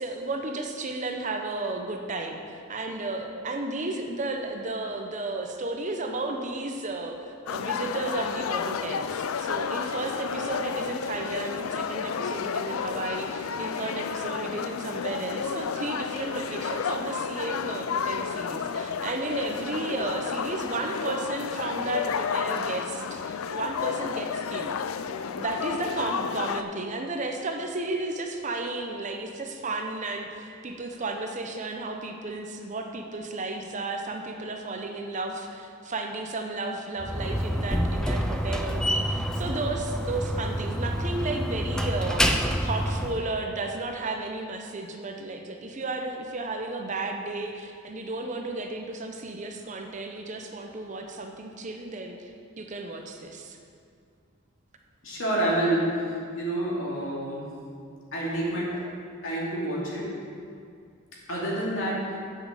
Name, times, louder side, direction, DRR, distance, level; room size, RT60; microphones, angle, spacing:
voice 1, 0.0-24.7 25.4-52.3 52.6-53.6, right 2 dB, 35° right, 3 dB, 0.7 m, -33 dB
sound 1, 7.5-26.6, left 6 dB, 90° left, 0.4 m, -31 dB
Slam, 37.0-43.2, equal, 5° left, 0.4 m, -27 dB
voice 2, 55.0-55.9 56.3-57.4 58.1-58.8 59.2-60.1 61.3-62.2, right 1 dB, 65° left, -6 dB, 2.8 m, -28 dB
7.5 x 6.6 x 7.4 m, 2.3 s
head